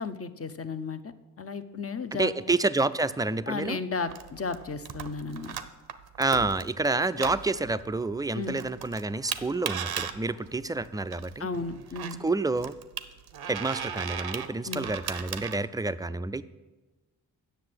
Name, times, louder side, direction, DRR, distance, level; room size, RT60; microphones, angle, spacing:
voice 1, 0.0-2.3 3.5-5.6 6.4-6.5 8.3-8.6 11.4-12.2 14.7-14.9, left 4 dB, 40° left, 10 dB, 0.7 m, -34 dB
voice 2, 2.1-3.8 6.2-11.5 12.2-12.8 13.5-16.4, right 3 dB, 10° right, 13 dB, 0.4 m, -28 dB
sound 1, 4.1-15.5, right 8 dB, 80° right, 0.7 m, -38 dB
8.0 x 6.5 x 7.8 m, 1.2 s
cardioid pair, 60°, 38 cm